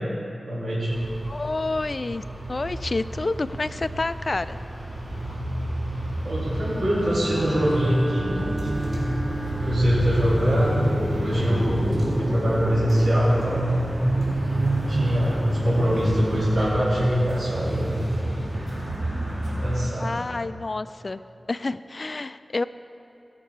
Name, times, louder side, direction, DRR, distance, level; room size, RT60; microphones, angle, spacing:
voice 1, 0.4-1.1 6.2-8.4 9.2-9.3 9.6-10.8 11.1-11.9 12.2-13.8 14.9-18.0 18.2-18.4 19.6-20.2, equal, 70° right, -9 dB, 3.2 m, -23 dB
sound 1, 0.9-19.8, right 1 dB, 50° right, 3.4 m, -28 dB
voice 2, 1.3-4.6 5.2-5.4 20.0-21.2 21.5-22.7, left 3 dB, 50° left, 13 dB, 0.3 m, -29 dB
Bowed string instrument, 6.9-10.0, right 2 dB, 25° right, 1.1 m, -34 dB
17.0 x 6.8 x 5.5 m, 2.7 s
wide cardioid pair, 75°, 0 cm